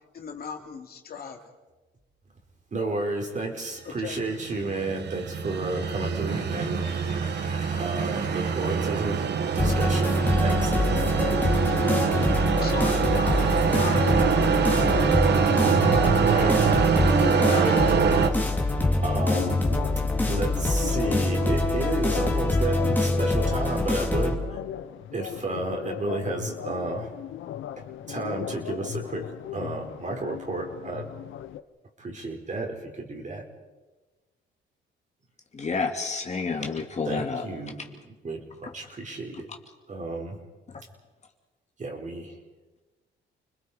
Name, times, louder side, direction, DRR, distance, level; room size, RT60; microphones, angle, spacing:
voice 1, 0.1-1.4 3.8-4.2 10.2-10.5 12.6-14.1 14.6-15.5 16.8-17.7, left 6 dB, 50° left, 2 dB, 3.0 m, -37 dB
voice 2, 2.7-10.7 13.1-14.7 15.5-16.6 17.3-19.6 20.3-24.6 25.1-27.1 27.8-31.1 32.0-33.5 36.6-36.7 37.0-39.5 39.9-40.4 41.8-42.3, right 2 dB, 40° right, 1 dB, 4.5 m, -32 dB
sound 1, 4.2-18.3, right 7 dB, 60° right, 1.4 m, -24 dB
sound 2, 9.6-24.4, left 2 dB, 10° left, 3.0 m, -25 dB
sound 3, 14.0-31.6, left 10 dB, 80° left, 0.9 m, -38 dB
voice 3, 35.5-37.4, left 4 dB, 35° left, 3 dB, 2.5 m, -29 dB
29.5 x 21.0 x 5.1 m, 1.2 s
cardioid pair, 90°, 20 cm